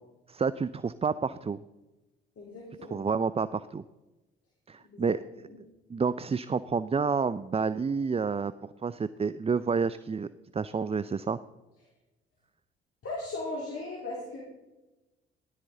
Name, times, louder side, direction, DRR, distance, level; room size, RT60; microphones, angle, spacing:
voice 1, 0.3-1.6 2.9-3.8 4.7-5.2 5.9-11.4, right 5 dB, 20° right, 15 dB, 0.5 m, -29 dB
voice 2, 2.4-3.1 4.8-5.1 13.0-14.4, left 2 dB, 50° left, -3 dB, 3.7 m, -37 dB
16.0 x 12.5 x 3.9 m, 1.0 s
hypercardioid pair, 45°, 29 cm